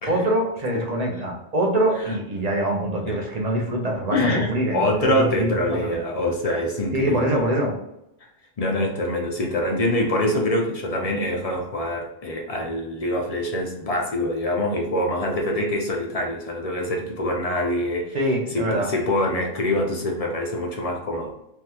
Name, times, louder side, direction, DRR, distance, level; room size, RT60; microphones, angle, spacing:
voice 1, 0.1-5.9 6.9-7.8 18.1-18.9, right 1 dB, 45° right, 0 dB, 0.7 m, -24 dB
voice 2, 4.1-7.4 8.6-18.2 18.5-21.3, left 1 dB, 45° left, 1 dB, 0.5 m, -25 dB
3.4 x 2.3 x 2.8 m, 0.83 s
omnidirectional pair, 1.1 m